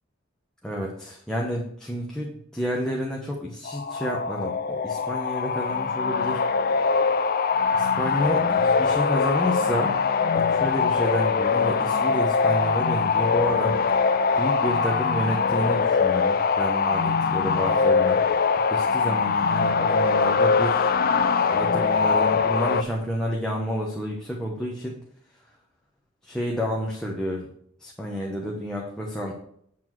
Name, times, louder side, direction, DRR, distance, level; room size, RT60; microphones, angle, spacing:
voice 1, 0.6-6.4 7.7-9.9 10.3-13.8 14.4-18.2 18.7-20.9 21.5-24.9 26.2-27.5 27.8-29.3, equal, 5° left, -3 dB, 1.2 m, -30 dB
sound 1, 3.6-22.8, left 5 dB, 50° left, 0.5 m, -22 dB
9.3 x 4.4 x 6.1 m, 0.67 s
head